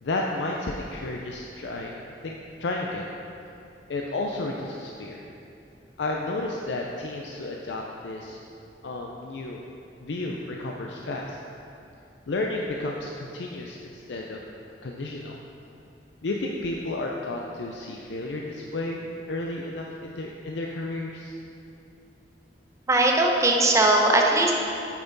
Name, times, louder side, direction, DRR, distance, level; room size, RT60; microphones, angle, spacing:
voice 1, 0.0-3.1 3.9-5.3 6.0-8.4 8.8-9.6 10.0-11.4 12.3-14.4 14.8-15.4 16.2-21.3, left 2 dB, 90° left, 0 dB, 0.5 m, -32 dB
voice 2, 22.9-24.5, right 2 dB, 20° right, 0 dB, 0.7 m, -19 dB
8.9 x 5.9 x 4.0 m, 2.7 s
head